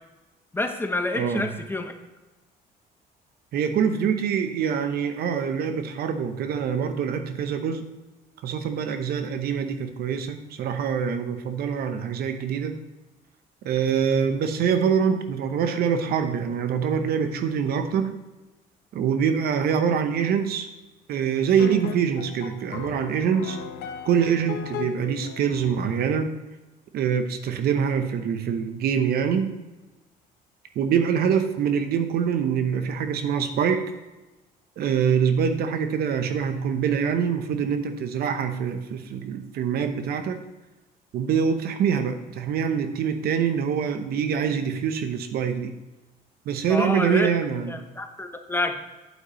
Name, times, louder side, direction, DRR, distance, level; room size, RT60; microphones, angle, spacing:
voice 1, 0.5-1.9 46.7-47.3 47.7-48.8, left 2 dB, 15° left, 6 dB, 0.8 m, -28 dB
voice 2, 1.2-1.5 3.5-7.9 8.4-12.8 13.6-18.1 18.9-20.7 21.1-23.6 24.0-26.3 26.9-29.5 30.8-33.8 34.8-40.4 41.1-45.7 46.5-47.8, right 7 dB, 65° right, 8 dB, 0.9 m, -24 dB
sound 1, 21.6-25.9, left 9 dB, 75° left, 0.7 m, -36 dB
8.4 x 8.3 x 3.1 m, 1.1 s
cardioid pair, 110°, 17 cm